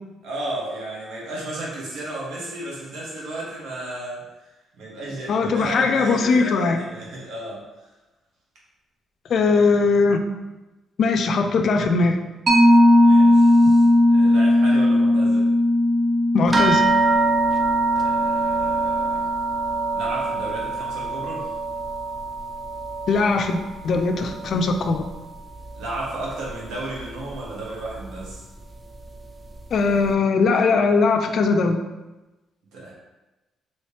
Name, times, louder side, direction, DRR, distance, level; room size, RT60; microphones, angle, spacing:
voice 1, 0.2-4.2 4.8-7.6 13.0-15.4 17.9-19.2 19.9-21.5 25.7-28.4 32.7-32.9, right 1 dB, 80° right, -4 dB, 1.2 m, -33 dB
voice 2, 5.3-6.8 9.3-10.2 11.0-12.2 16.3-16.8 23.1-23.6 23.8-25.1 29.7-31.8, left 4 dB, 60° left, 6 dB, 0.4 m, -20 dB
Mallet percussion, 12.5-19.5, left 1 dB, 50° right, 0.8 m, -17 dB
sound 1, 16.5-25.4 25.7-26.5 27.3-27.4 27.8-28.0, right 4 dB, 20° right, 0.4 m, -25 dB
3.0 x 2.9 x 3.2 m, 1.1 s
cardioid pair, 90°, 0 cm